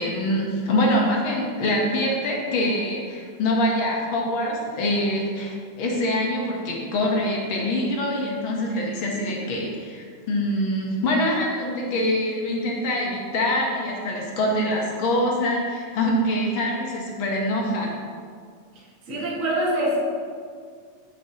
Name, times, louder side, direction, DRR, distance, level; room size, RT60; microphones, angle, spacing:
voice 1, 0.0-17.9, left 1 dB, 55° left, -1 dB, 1.6 m, -24 dB
voice 2, 18.7-20.0, right 1 dB, 30° right, -6 dB, 1.9 m, -25 dB
8.9 x 7.7 x 2.9 m, 2.1 s
omnidirectional pair, 3.4 m